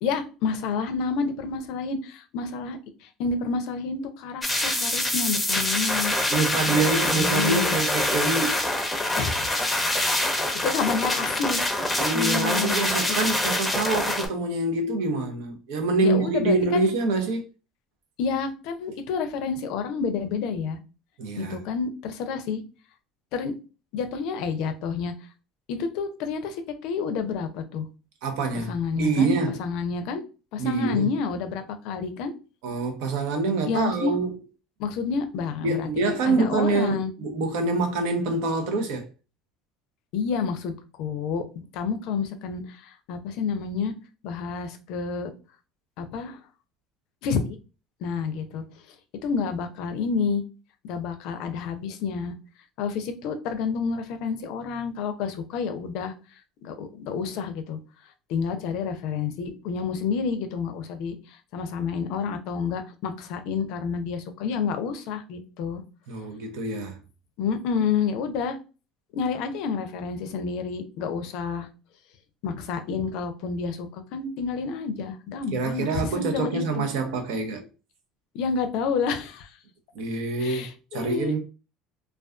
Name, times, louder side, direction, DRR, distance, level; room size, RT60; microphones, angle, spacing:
voice 1, 0.0-6.1 6.7-6.9 7.1-7.8 9.1-9.5 9.9-10.1 10.6-12.8 13.1-13.2 16.0-16.9 18.2-20.8 21.4-22.6 23.3-23.6 23.9-25.1 25.7-27.9 28.7-29.3 29.6-30.2 30.5-32.3 33.6-34.2 34.8-37.1 40.1-41.4 41.7-43.9 44.2-45.3 46.0-46.4 47.2-47.6 48.0-48.6 49.2-50.4 50.8-52.3 52.8-56.1 56.6-57.8 58.3-65.8 67.4-68.6 69.1-71.7 72.4-75.9 76.2-76.9 78.3-79.5 80.4-81.3, left 5 dB, 70° left, 0.4 m, -29 dB
sound 1, 4.4-14.3, left 1 dB, 10° left, 0.6 m, -25 dB
voice 2, 6.3-8.7 11.9-17.4 21.2-21.6 28.2-29.6 30.6-31.1 32.6-34.4 35.6-39.1 66.1-67.0 75.5-77.7 79.9-81.4, right 3 dB, 80° right, 0.6 m, -26 dB
2.4 x 2.3 x 2.3 m
supercardioid pair, 95°, 0 cm